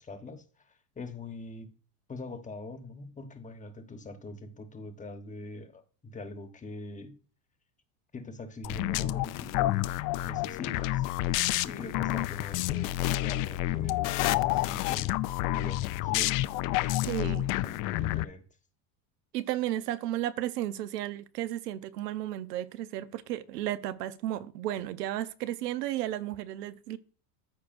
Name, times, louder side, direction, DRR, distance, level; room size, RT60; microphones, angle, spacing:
voice 1, 0.0-1.7 2.1-7.2 8.1-11.0 11.6-15.2 15.5-16.5 17.2-18.4, left 2 dB, 15° left, 1.2 m, -43 dB
sound 1, 8.6-18.2, left 16 dB, 45° left, 0.5 m, -29 dB
voice 2, 17.1-17.5 19.3-27.0, right 13 dB, 85° right, 0.9 m, -33 dB
14.0 x 4.8 x 2.6 m
supercardioid pair, 115°, 47 cm